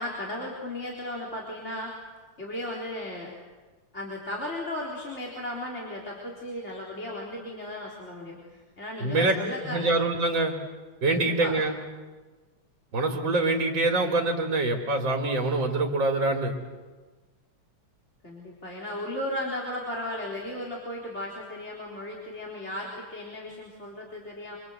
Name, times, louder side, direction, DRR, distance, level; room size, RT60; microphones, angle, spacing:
voice 1, 0.0-1.9 2.4-3.3 3.9-8.4 8.8-9.9 11.1-11.6 18.2-24.6, left 1 dB, 30° left, -2 dB, 4.3 m, -35 dB
voice 2, 9.0-9.3 9.6-10.5 11.0-11.8 12.9-16.5, right 2 dB, 60° right, 1 dB, 3.6 m, -25 dB
27.5 x 25.0 x 8.1 m, 1.3 s
omnidirectional pair, 2.4 m